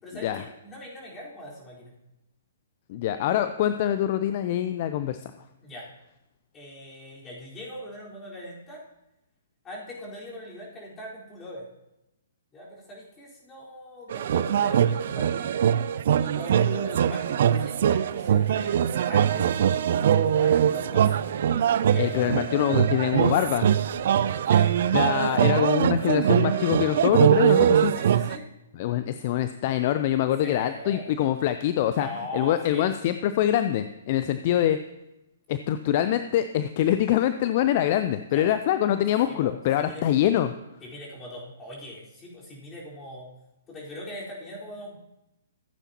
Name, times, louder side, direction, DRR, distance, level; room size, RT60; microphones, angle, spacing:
voice 1, 0.0-1.9 5.6-5.9 6.5-8.8 9.6-11.7 12.5-15.6 16.2-19.9 20.2-21.3 21.9-22.4 24.5-24.7 27.5-28.5 30.4-31.1 31.9-32.9 38.3-38.5 39.3-40.0 40.8-43.3 43.7-45.0, left 1 dB, 20° left, -6 dB, 4.2 m, -41 dB
voice 2, 2.9-5.3 22.0-23.7 24.9-27.9 28.7-34.8 35.5-40.5, left 11 dB, 45° left, 11 dB, 0.4 m, -24 dB
sound 1, 14.1-28.4, right 9 dB, 55° right, 0.4 m, -22 dB
15.0 x 9.0 x 2.9 m, 0.92 s
figure-of-eight pair, 125°, 0 cm